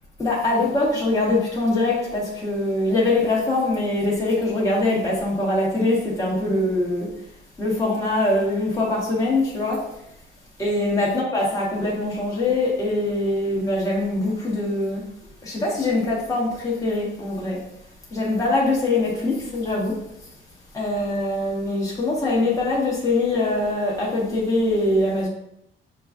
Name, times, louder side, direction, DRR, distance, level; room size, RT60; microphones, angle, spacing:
voice 1, 0.2-7.1 7.6-9.8 10.6-15.0 15.4-17.6 18.1-19.9 20.7-25.3, left 2 dB, 15° left, -6 dB, 1.2 m, -23 dB
6.5 x 2.3 x 2.4 m, 0.78 s
cardioid pair, 160°, 20 cm